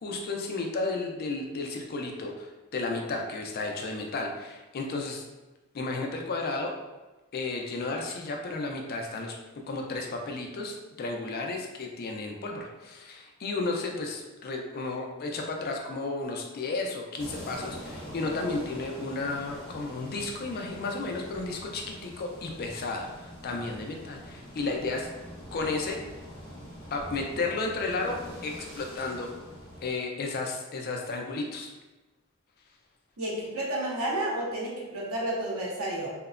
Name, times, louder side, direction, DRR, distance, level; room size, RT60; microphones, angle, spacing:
voice 1, 0.0-5.2 5.7-6.7 7.3-9.4 9.7-25.1 25.5-26.0 26.9-29.3 29.8-31.7, left 3 dB, 45° left, 2 dB, 0.4 m, -33 dB
sound 1, 17.2-29.9, equal, 15° left, 1.1 m, -44 dB
voice 2, 33.2-36.1, right 1 dB, 90° right, -4 dB, 0.8 m, -31 dB
2.8 x 2.0 x 2.4 m, 1.1 s
head